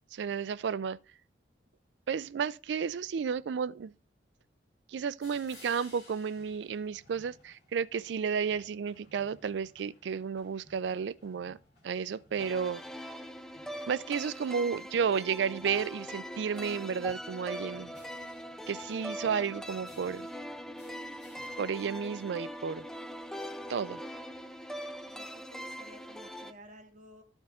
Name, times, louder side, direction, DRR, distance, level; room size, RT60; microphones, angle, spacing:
voice 1, 0.1-1.0 2.1-3.9 4.9-11.6 11.8-12.8 13.9-17.9 18.7-20.3 21.6-22.8 23.7-24.0, right 6 dB, 80° right, 0.4 m, -32 dB
sound 1, 5.2-21.6, left 2 dB, 65° left, 3.5 m, -60 dB
sound 2, 12.4-26.5, equal, 5° left, 0.4 m, -42 dB
voice 2, 25.0-27.2, equal, 45° right, 1.2 m, -53 dB
13.0 x 4.5 x 3.6 m
head